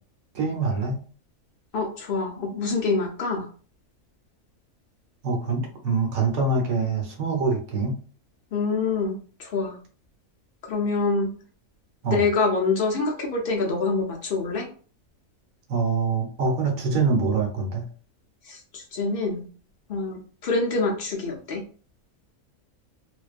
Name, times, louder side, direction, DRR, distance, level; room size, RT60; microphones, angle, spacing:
voice 1, 0.3-1.0 5.2-8.0 12.0-12.2 15.7-17.8, right 4 dB, 70° right, 1 dB, 1.1 m, -24 dB
voice 2, 1.7-3.5 8.5-9.8 10.7-11.3 12.1-14.7 18.5-19.4 19.9-21.6, left 3 dB, 90° left, 0 dB, 0.5 m, -26 dB
2.5 x 2.2 x 2.4 m, 0.41 s
omnidirectional pair, 1.5 m